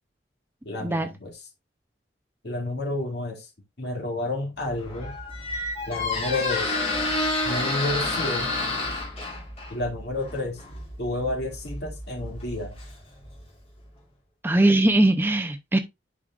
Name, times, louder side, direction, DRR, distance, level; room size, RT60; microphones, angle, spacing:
voice 1, 0.6-1.3 2.4-3.5 3.8-5.2 5.9-6.7 7.4-8.5 9.7-10.6 11.0-12.8, left 2 dB, 60° left, 2.3 m, -30 dB
Squeak, 4.7-13.4, left 2 dB, 35° left, 2.7 m, -30 dB
voice 2, 14.4-15.8, right 1 dB, 10° right, 0.5 m, -20 dB
10.5 x 4.9 x 2.4 m
head